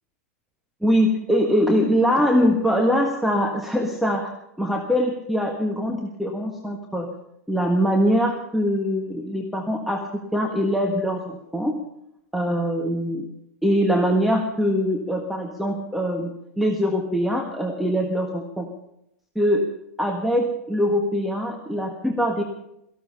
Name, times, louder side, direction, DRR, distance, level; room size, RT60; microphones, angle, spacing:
voice 1, 0.8-4.3 4.6-7.1 7.5-11.7 12.3-13.3 13.6-18.7 19.3-19.7 20.0-22.4, equal, ahead, 2 dB, 1.5 m, -23 dB
18.0 x 14.5 x 5.5 m, 0.81 s
figure-of-eight pair, 100°, 8 cm